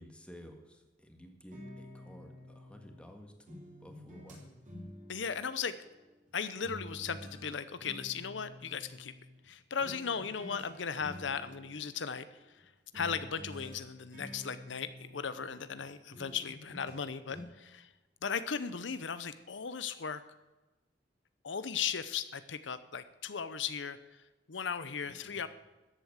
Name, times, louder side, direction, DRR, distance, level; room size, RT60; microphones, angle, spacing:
voice 1, 0.0-4.8 25.0-25.4, equal, 5° left, 4 dB, 1.8 m, -54 dB
sound 1, 1.5-3.1 3.5-6.3 6.6-9.5 9.8-10.7 11.0-12.6 12.9-15.8 16.1-17.0 17.3-17.4, left 1 dB, 45° right, 3.9 m, -50 dB
voice 2, 5.1-5.8 6.3-9.1 9.4-17.9 18.2-20.2 21.4-24.2 24.5-25.5, left 6 dB, 90° left, 13 dB, 0.8 m, -37 dB
14.0 x 8.3 x 8.1 m, 1.1 s
head